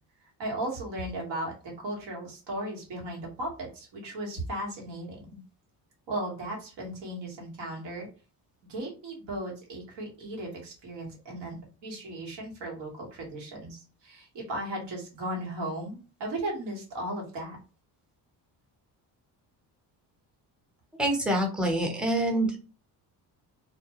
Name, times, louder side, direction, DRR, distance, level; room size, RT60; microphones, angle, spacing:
voice 1, 0.4-5.4 6.1-8.1 8.7-17.6, right 1 dB, 80° right, -1 dB, 1.4 m, -36 dB
voice 2, 21.0-22.6, right 1 dB, ahead, 1 dB, 0.9 m, -26 dB
2.5 x 2.2 x 2.9 m, 0.35 s
cardioid pair, 80°, 43 cm